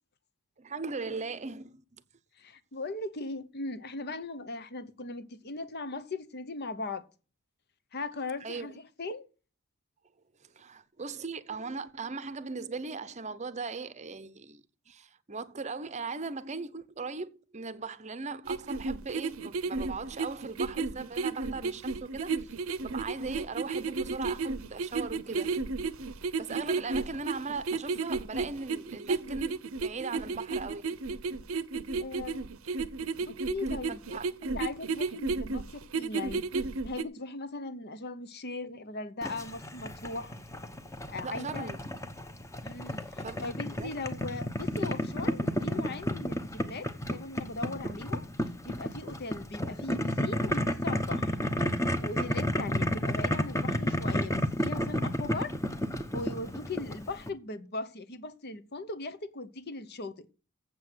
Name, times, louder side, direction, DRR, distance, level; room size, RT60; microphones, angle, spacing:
voice 1, 0.6-1.8 8.4-8.7 10.4-22.5 22.8-25.6 26.3-30.9 33.9-34.4 41.2-42.0 43.2-43.5 43.8-43.9, right 4 dB, 30° right, 0.7 m, -39 dB
voice 2, 2.4-7.1 7.9-9.3 32.0-32.5 33.1-34.2 34.5-40.4 41.1-41.7 42.6-51.3 52.0-55.6 56.0-60.3, left 3 dB, 50° left, 0.9 m, -39 dB
sound 1, 18.5-37.0, right 4 dB, 70° right, 0.8 m, -32 dB
Boiling, 39.2-57.3, equal, 15° left, 0.9 m, -32 dB
7.8 x 7.7 x 8.0 m
head